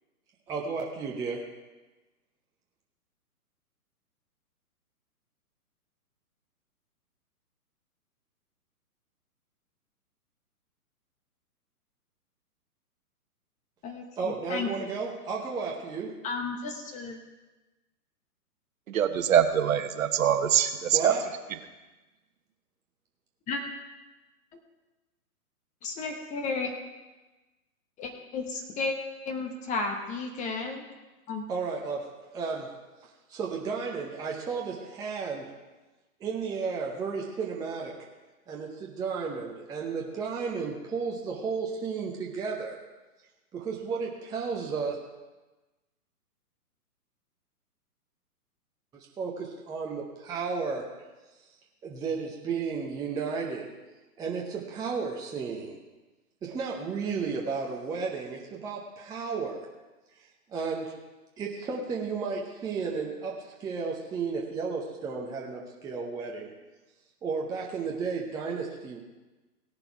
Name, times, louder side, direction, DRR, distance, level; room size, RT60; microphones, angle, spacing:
voice 1, 0.5-1.4 14.2-16.1 20.9-21.3 31.5-32.7 33.0-35.5 36.2-38.0 38.5-42.8 43.5-45.0 48.9-50.9 51.8-53.7 54.2-55.8 56.4-59.6 60.5-61.0 61.4-66.5 67.2-69.0, right 5 dB, 10° right, -1 dB, 0.7 m, -33 dB
voice 2, 13.8-14.7 16.2-17.2 23.5-23.6 25.8-26.7 28.0-29.0 29.2-30.8 31.3-31.4, left 4 dB, 15° left, 4 dB, 1.0 m, -33 dB
voice 3, 18.9-21.1, right 9 dB, 60° right, 8 dB, 1.2 m, -23 dB
17.0 x 6.9 x 4.6 m, 1.2 s
hypercardioid pair, 135°, 46 cm